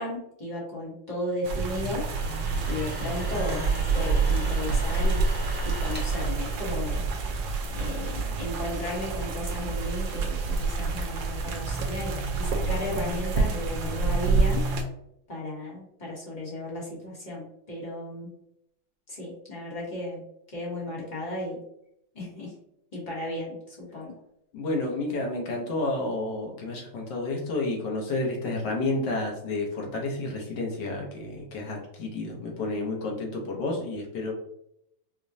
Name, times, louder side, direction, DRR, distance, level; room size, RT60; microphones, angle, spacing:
voice 1, 0.0-2.0 2.7-5.2 5.6-7.0 7.7-14.6 15.3-18.3 19.1-20.2 20.5-21.6 22.1-22.5 22.9-24.1, left 1 dB, 30° left, -5 dB, 1.0 m, -35 dB
sound 1, 1.4-14.8, right 4 dB, 75° right, 1.3 m, -28 dB
sound 2, 1.7-7.4, right 1 dB, 10° right, 0.4 m, -40 dB
voice 2, 24.5-34.3, left 2 dB, 65° left, 0 dB, 1.5 m, -30 dB
5.0 x 2.2 x 2.6 m, 0.76 s
omnidirectional pair, 2.1 m